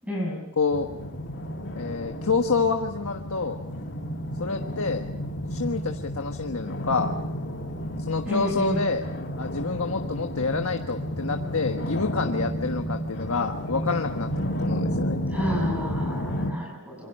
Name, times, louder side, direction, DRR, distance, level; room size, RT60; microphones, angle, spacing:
voice 1, 0.0-0.5 8.2-8.9 15.3-17.1, equal, 5° right, 0 dB, 7.1 m, -30 dB
voice 2, 0.6-0.9 1.8-3.6 4.4-5.0 5.5-7.1 8.1-9.0 9.4-15.2, left 4 dB, 75° left, 5 dB, 1.4 m, -27 dB
sound 1, 0.7-16.5, equal, 50° left, 2.2 m, -31 dB
27.0 x 24.5 x 5.5 m, 0.86 s
head